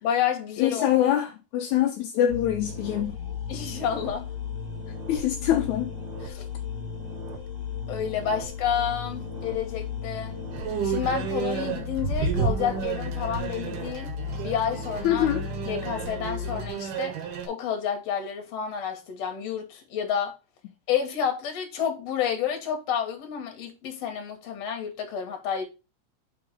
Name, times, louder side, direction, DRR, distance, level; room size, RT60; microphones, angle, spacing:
voice 1, 0.0-1.0 3.5-4.3 6.2-6.5 7.9-10.4 10.8-14.1 14.4-15.3 15.7-17.2 17.4-20.4 20.9-25.6, left 8 dB, 60° left, 2.3 m, -30 dB
voice 2, 0.6-3.2 5.1-5.9 15.0-15.5, left 11 dB, 75° left, 1.9 m, -24 dB
sound 1, 2.3-16.7, left 5 dB, 65° right, 2.6 m, -36 dB
sound 2, 2.6-10.9, left 8 dB, 40° left, 3.0 m, -45 dB
sound 3, 10.5-17.5, right 7 dB, 90° right, 3.0 m, -31 dB
5.9 x 3.8 x 5.5 m
omnidirectional pair, 3.6 m